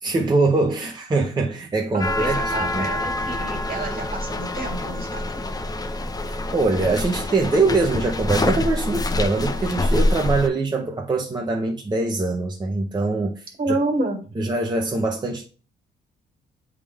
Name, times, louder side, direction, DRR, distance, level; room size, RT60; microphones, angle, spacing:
voice 1, 0.0-2.9 6.3-13.7 14.4-15.5, right 3 dB, 20° right, 0.7 m, -23 dB
voice 2, 1.9-5.5 13.6-14.2, right 2 dB, 45° right, 1.8 m, -29 dB
sound 1, 2.0-10.5, left 2 dB, 20° left, 0.6 m, -26 dB
8.1 x 3.6 x 3.5 m
cardioid pair, 90°, 20 cm